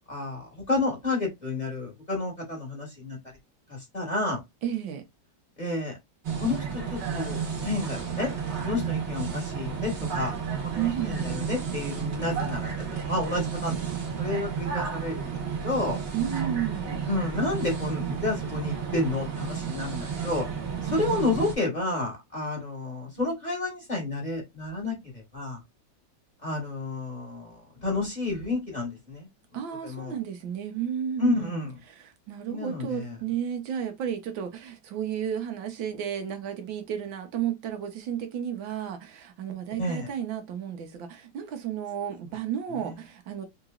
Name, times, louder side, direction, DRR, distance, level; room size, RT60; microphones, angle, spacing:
voice 1, 0.1-3.2 3.7-4.4 5.6-6.0 6.4-8.3 8.6-10.3 10.7-15.3 15.6-16.0 17.0-20.4 20.8-25.6 26.4-29.3 29.8-30.1 31.2-31.7 32.5-33.2 39.8-40.1 42.8-43.0, left 2 dB, 25° left, 1.5 m, -30 dB
voice 2, 4.6-5.0 10.8-11.4 16.1-17.0 20.9-21.2 29.5-31.6 32.0-43.5, right 9 dB, 80° right, 1.6 m, -32 dB
sound 1, 6.2-21.6, right 7 dB, 40° right, 1.2 m, -32 dB
3.8 x 3.0 x 2.4 m
omnidirectional pair, 2.1 m